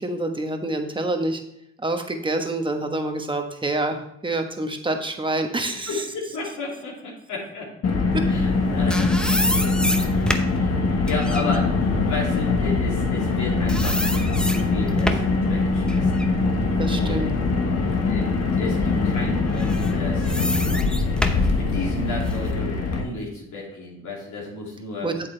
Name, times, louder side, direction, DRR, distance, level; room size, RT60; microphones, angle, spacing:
voice 1, 0.0-1.4 1.8-6.0 8.1-8.3 16.8-17.3 25.0-25.1, right 2 dB, 15° right, 5 dB, 1.2 m, -27 dB
voice 2, 5.9-7.7 8.3-9.9 10.5-14.0 14.3-16.2 17.0-17.3 18.1-18.3 18.6-20.4 21.6-25.2, left 2 dB, 75° left, -4 dB, 2.7 m, -33 dB
Car, 7.8-23.0, left 3 dB, 55° left, 1.5 m, -22 dB
sound 1, 8.5-13.4 13.7-15.4 15.9-17.8 18.3-18.4 19.5-22.5, equal, 5° left, 0.7 m, -29 dB
8.2 x 7.6 x 3.3 m, 0.77 s
cardioid pair, 90°, 30 cm